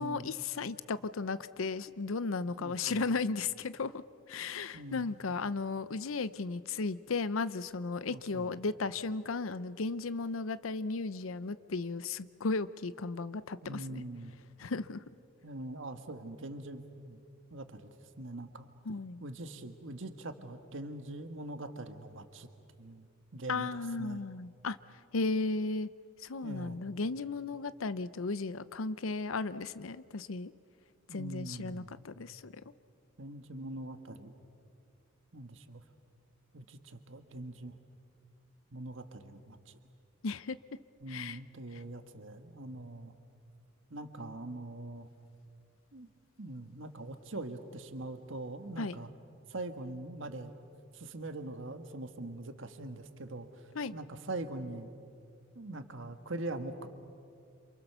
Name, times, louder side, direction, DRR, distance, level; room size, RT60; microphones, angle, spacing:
voice 1, 0.0-14.0 14.6-15.0 18.9-19.2 23.5-24.8 25.1-25.9 26.2-30.5 31.1-32.6 40.2-40.6 41.1-41.4 48.8-49.0 53.8-53.9, left 3 dB, 85° left, 15 dB, 0.7 m, -35 dB
voice 2, 2.6-3.1 4.7-5.1 8.1-8.6 13.6-14.4 15.4-17.2 17.5-17.9 18.2-18.7 19.2-22.5 22.8-23.7 24.0-24.2 26.4-26.8 31.1-32.1 33.2-34.3 35.3-35.8 36.5-37.8 38.7-39.8 41.0-43.1 43.9-45.1 45.9-46.1 46.4-49.1 49.5-50.6 50.9-54.9 55.5-56.9, right 2 dB, 70° right, 8 dB, 1.5 m, -43 dB
28.0 x 27.5 x 6.8 m, 2.4 s
head